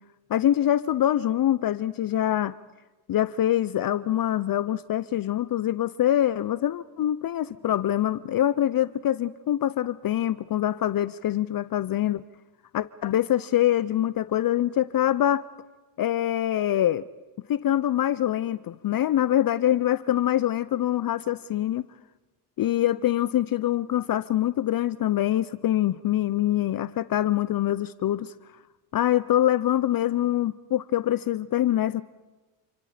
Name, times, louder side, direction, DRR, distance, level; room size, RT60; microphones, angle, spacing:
voice 1, 0.3-2.6 3.1-12.2 12.7-15.4 16.0-17.0 17.5-21.9 22.6-28.3 28.9-32.0, left 12 dB, 45° left, 16 dB, 0.7 m, -24 dB
29.5 x 25.5 x 5.1 m, 1.2 s
supercardioid pair, 85°, 49 cm